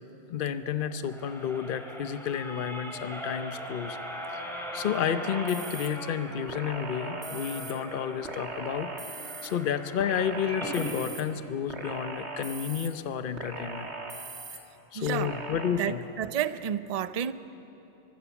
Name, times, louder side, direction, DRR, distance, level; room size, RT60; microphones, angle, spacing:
voice 1, 0.3-4.0 4.3-9.1 9.4-13.9 14.9-16.0, left 8 dB, 50° left, 11 dB, 0.9 m, -31 dB
sound 1, 0.8-10.9 11.4-11.5 11.8-11.9, equal, ahead, 2.6 m, -40 dB
sound 2, 5.2-5.9 6.5-7.7 8.2-9.5 10.0-11.2 11.7-12.9 13.4-14.6 15.1-15.7, right 3 dB, 65° right, 2.0 m, -39 dB
voice 2, 14.9-15.3 15.8-17.3, right 9 dB, 50° right, 14 dB, 0.5 m, -31 dB
23.5 x 15.5 x 7.0 m, 3.0 s
omnidirectional pair, 1.2 m